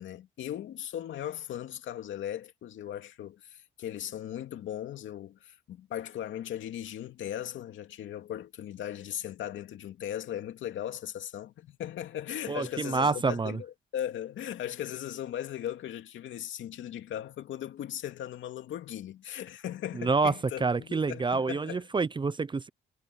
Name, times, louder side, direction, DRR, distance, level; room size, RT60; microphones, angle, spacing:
voice 1, 0.0-21.8, left 11 dB, 75° left, 2.6 m, -38 dB
voice 2, 12.5-13.6 20.0-20.3 20.6-22.7, right 4 dB, 25° right, 0.6 m, -27 dB
cardioid pair, 90°, 20 cm